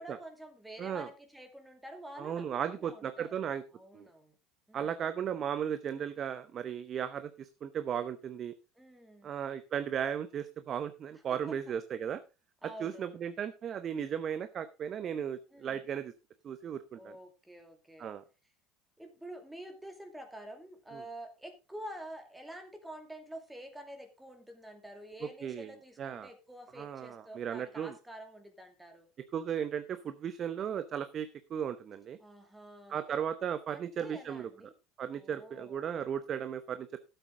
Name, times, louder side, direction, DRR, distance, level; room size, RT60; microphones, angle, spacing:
voice 1, 0.0-3.3 3.7-4.3 4.7-4.9 8.8-9.3 11.3-11.6 12.6-13.1 15.5-15.8 16.9-18.1 19.0-29.1 32.2-33.1 33.7-34.7 35.1-35.8, right 1 dB, 5° right, 5 dB, 2.3 m, -48 dB
voice 2, 2.2-3.6 3.9-4.1 4.7-8.5 9.2-12.2 12.8-16.1 16.4-17.2 18.0-18.2 20.9-21.0 25.4-26.3 26.8-27.9 29.3-32.2 32.9-34.5 35.0-37.0, right 8 dB, 40° right, 11 dB, 0.8 m, -36 dB
12.5 x 7.9 x 3.7 m, 0.29 s
hypercardioid pair, 75°, 0 cm